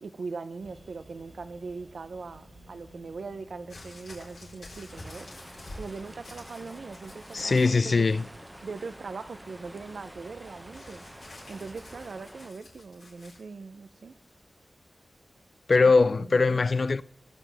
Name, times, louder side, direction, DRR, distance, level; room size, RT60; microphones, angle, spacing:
voice 1, 0.0-5.3 5.8-7.9 8.6-11.0 11.5-14.1 15.8-15.9 16.2-16.6, right 4 dB, 80° right, 0.7 m, -41 dB
sound 1, 0.6-12.1, right 1 dB, 55° right, 2.1 m, -55 dB
sound 2, 3.7-7.8 8.1-8.7 10.7-13.4 14.3-14.4, left 2 dB, 80° left, 4.4 m, -48 dB
sound 3, 4.9-12.5, equal, 10° right, 0.7 m, -48 dB
voice 2, 7.3-8.3 15.7-17.0, left 4 dB, 55° left, 0.3 m, -21 dB
21.0 x 7.4 x 3.5 m
wide cardioid pair, 80°, 0 cm